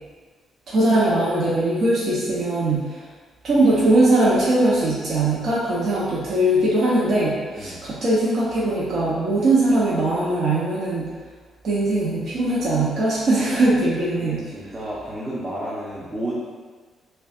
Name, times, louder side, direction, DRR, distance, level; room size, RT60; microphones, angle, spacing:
voice 1, 0.7-3.0 3.4-11.1 11.6-14.4, right 1 dB, 60° right, -7 dB, 0.8 m, -20 dB
voice 2, 14.2-16.3, right 1 dB, 25° right, -8 dB, 0.8 m, -31 dB
5.4 x 2.3 x 2.4 m, 1.5 s
cardioid pair, 90°, 0 cm